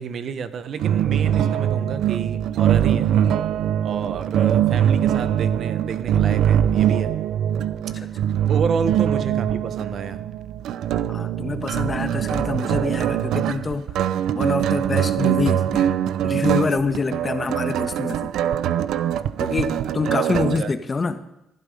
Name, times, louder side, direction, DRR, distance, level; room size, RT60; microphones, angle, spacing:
voice 1, 0.0-3.1 3.8-7.1 8.5-10.2 20.0-20.7, right 6 dB, 60° right, 12 dB, 1.2 m, -29 dB
sound 1, 0.8-20.6, right 10 dB, 80° right, 0.6 m, -22 dB
voice 2, 11.1-13.9 14.3-15.9 16.2-18.3 19.4-21.2, left 4 dB, 35° left, 9 dB, 1.3 m, -26 dB
18.5 x 12.0 x 5.3 m, 0.86 s
cardioid pair, 90°, 0 cm